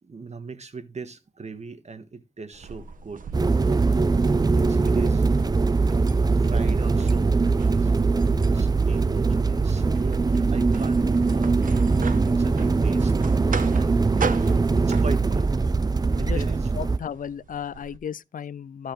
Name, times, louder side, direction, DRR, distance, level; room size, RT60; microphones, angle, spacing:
voice 1, 0.0-4.1 4.5-5.3 6.1-7.9 8.5-10.3 10.5-11.8 12.2-13.1 13.8-14.0 14.7-15.5 16.2-16.7, right 4 dB, 55° right, 1.4 m, -39 dB
sound 1, 2.5-18.0, right 5 dB, 85° right, 0.9 m, -39 dB
sound 2, 3.3-17.0, right 4 dB, 30° right, 0.5 m, -21 dB
voice 2, 16.7-18.9, left 8 dB, 85° left, 0.4 m, -34 dB
13.5 x 4.8 x 4.5 m
wide cardioid pair, 80°, 14 cm